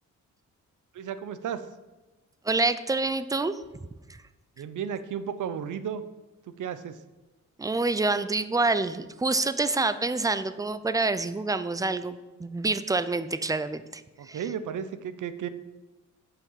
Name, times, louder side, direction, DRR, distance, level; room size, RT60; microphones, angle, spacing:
voice 1, 0.9-1.7 4.6-6.0 6.5-7.0 14.2-15.5, right 8 dB, 70° right, 12 dB, 0.7 m, -34 dB
voice 2, 2.4-3.9 7.6-14.4, right 3 dB, 10° right, 13 dB, 0.4 m, -27 dB
8.1 x 5.8 x 5.7 m, 1.1 s
cardioid pair, 100°, 31 cm